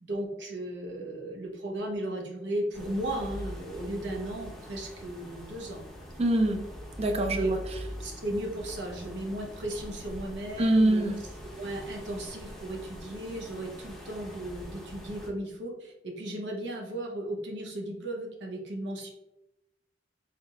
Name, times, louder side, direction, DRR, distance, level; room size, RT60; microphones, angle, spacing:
voice 1, 0.0-5.8 7.3-7.5 8.0-11.1 11.4-19.1, right 1 dB, 90° right, 0 dB, 1.0 m, -35 dB
sound 1, 2.7-15.3, equal, ahead, 0.7 m, -43 dB
voice 2, 6.2-6.6 7.0-7.4 10.6-11.1, right 1 dB, 35° right, 4 dB, 0.6 m, -23 dB
4.4 x 3.6 x 2.3 m, 0.95 s
head